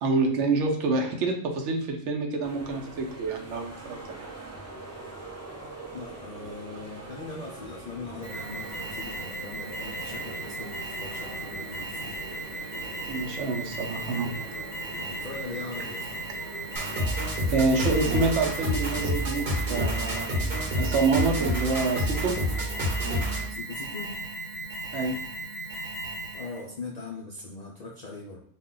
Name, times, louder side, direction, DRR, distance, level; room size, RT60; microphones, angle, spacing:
voice 1, 0.0-4.3 13.1-14.3 17.5-22.4 24.9-25.2, right 3 dB, 80° right, 3 dB, 0.9 m, -27 dB
sound 1, 2.4-17.3, right 2 dB, 20° right, 0.4 m, -43 dB
voice 2, 5.9-12.2 15.0-16.1 23.5-24.2 26.3-28.4, left 3 dB, 70° left, -2 dB, 0.4 m, -40 dB
Alarm, 8.2-26.6, right 2 dB, 5° right, 0.9 m, -37 dB
sound 2, 16.8-23.5, equal, 55° right, 0.9 m, -29 dB
2.3 x 2.1 x 3.7 m, 0.67 s
omnidirectional pair, 1.2 m